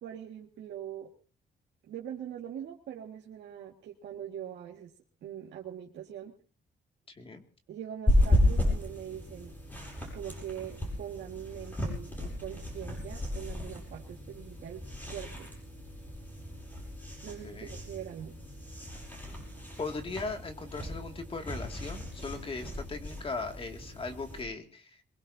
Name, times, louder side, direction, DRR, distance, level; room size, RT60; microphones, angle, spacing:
voice 1, 0.0-1.1 1.9-4.9 5.2-6.3 7.7-9.6 10.1-14.8 15.1-15.5 17.2-18.3, right 10 dB, 90° right, -2 dB, 2.1 m, -42 dB
voice 2, 7.1-7.4 17.4-17.7 19.8-25.0, left 3 dB, 30° left, 4 dB, 2.5 m, -38 dB
sound 1, 8.1-24.4, left 1 dB, 10° left, 7.7 m, -33 dB
23.0 x 22.0 x 2.8 m, 0.39 s
cardioid pair, 135°, 18 cm